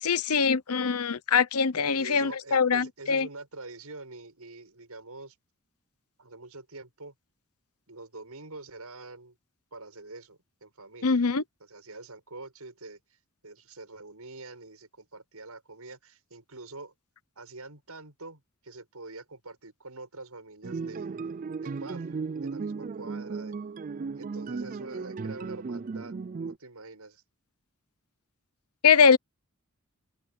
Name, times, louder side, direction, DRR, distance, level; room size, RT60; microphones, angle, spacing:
voice 1, 0.0-3.3 11.0-11.4 28.8-29.2, left 6 dB, 85° left, 1.0 m, -23 dB
voice 2, 1.9-5.4 6.2-7.1 7.9-9.4 9.7-11.2 11.6-13.0 13.4-16.9 17.4-21.1 21.5-23.5 24.1-27.2, right 3 dB, 85° right, 6.6 m, -45 dB
sound 1, 20.6-26.6, right 4 dB, 35° right, 0.3 m, -35 dB
head